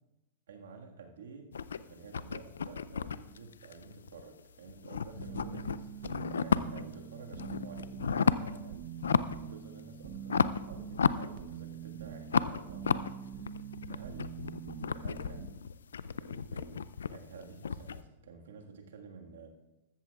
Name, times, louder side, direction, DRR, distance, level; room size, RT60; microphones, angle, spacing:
voice 1, 0.5-9.1 9.4-14.4 14.9-15.6 16.2-19.5, right 5 dB, 80° right, 2 dB, 1.7 m, -51 dB
sound 1, 1.5-4.4 4.7-6.9 7.3-8.6 8.9-9.5 9.8-11.8 12.3-18.0, left 6 dB, 85° left, 0.4 m, -33 dB
sound 2, 5.2-15.5, right 9 dB, 60° right, 0.8 m, -44 dB
13.5 x 13.5 x 2.4 m, 0.98 s
hypercardioid pair, 110°, 0 cm